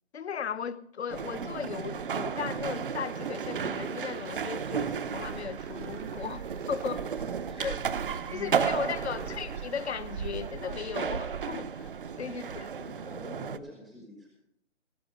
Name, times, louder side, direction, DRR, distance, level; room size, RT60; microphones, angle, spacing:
voice 1, 0.1-7.1 7.6-7.8 8.3-11.9 12.2-12.6, left 7 dB, 60° left, 0.9 m, -36 dB
sound 1, 1.1-13.6, right 7 dB, 45° right, 0.7 m, -34 dB
sound 2, 1.8-11.5, right 6 dB, 70° right, 1.1 m, -47 dB
voice 2, 7.3-7.9 8.3-9.3 12.2-14.3, left 2 dB, ahead, 0.7 m, -47 dB
17.5 x 5.9 x 7.8 m
hypercardioid pair, 160°, 36 cm